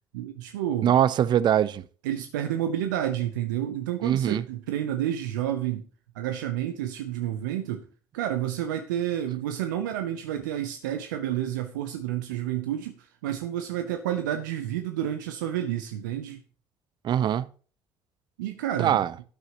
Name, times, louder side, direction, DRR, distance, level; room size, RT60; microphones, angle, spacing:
voice 1, 0.1-0.9 2.0-5.9 6.1-7.9 8.1-16.4 18.4-19.0, right 11 dB, 85° right, 0.7 m, -30 dB
voice 2, 0.8-1.9 4.0-4.4 17.0-17.5 18.8-19.1, right 10 dB, 50° right, 0.5 m, -22 dB
14.0 x 8.3 x 2.9 m
hypercardioid pair, 60°, 10 cm